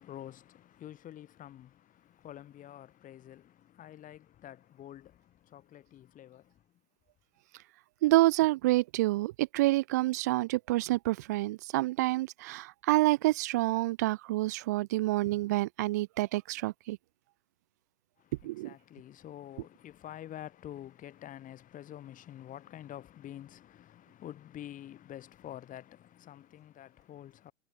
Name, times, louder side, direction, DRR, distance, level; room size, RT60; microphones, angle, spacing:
voice 1, 0.0-6.7 18.2-27.5, left 12 dB, 20° left, 5.6 m, -48 dB
voice 2, 8.0-17.0 18.4-18.7, right 18 dB, 15° right, 0.4 m, -28 dB
hypercardioid pair, 130°, 39 cm